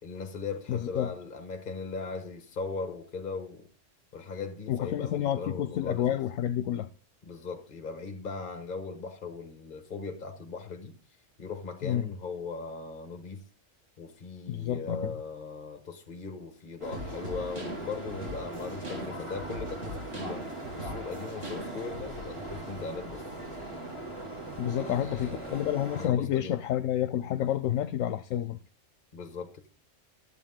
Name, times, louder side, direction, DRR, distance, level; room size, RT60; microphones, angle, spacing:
voice 1, 0.0-3.7 4.1-6.2 7.2-11.0 11.4-13.4 14.0-20.5 20.8-23.2 24.7-26.6 29.1-29.7, left 4 dB, 40° left, 1.4 m, -39 dB
voice 2, 0.7-1.1 4.7-6.9 11.8-12.1 14.5-15.1 24.6-28.6, left 11 dB, 85° left, 1.0 m, -29 dB
sound 1, 16.8-26.1, right 2 dB, 25° right, 2.6 m, -40 dB
sound 2, 16.9-22.1, equal, 50° right, 3.0 m, -40 dB
12.0 x 7.9 x 3.7 m
omnidirectional pair, 1.3 m